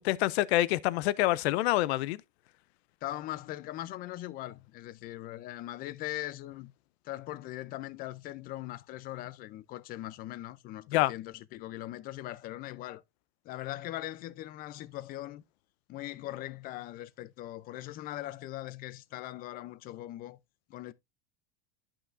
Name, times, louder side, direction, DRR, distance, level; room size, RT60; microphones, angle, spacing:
voice 1, 0.0-2.2 10.9-11.1, left 16 dB, 85° left, 0.5 m, -26 dB
voice 2, 3.0-6.7 7.0-13.0 13.4-15.4 15.9-20.4 20.7-20.9, left 15 dB, 30° left, 0.4 m, -40 dB
11.0 x 5.7 x 2.5 m
supercardioid pair, 155°, 31 cm